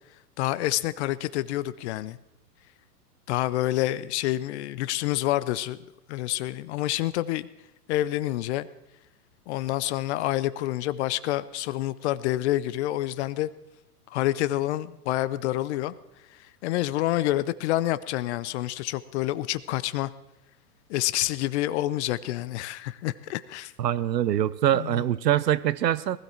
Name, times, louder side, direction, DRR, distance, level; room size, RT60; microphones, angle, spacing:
voice 1, 0.4-2.2 3.3-5.8 6.1-7.5 7.9-8.7 9.5-13.5 14.1-16.0 16.3-20.1 20.9-23.7 24.7-25.0, left 15 dB, 45° left, 16 dB, 0.6 m, -28 dB
voice 2, 23.8-26.2, right 11 dB, 85° right, 18 dB, 0.8 m, -24 dB
19.0 x 12.5 x 4.4 m, 0.95 s
hypercardioid pair, 120°, 48 cm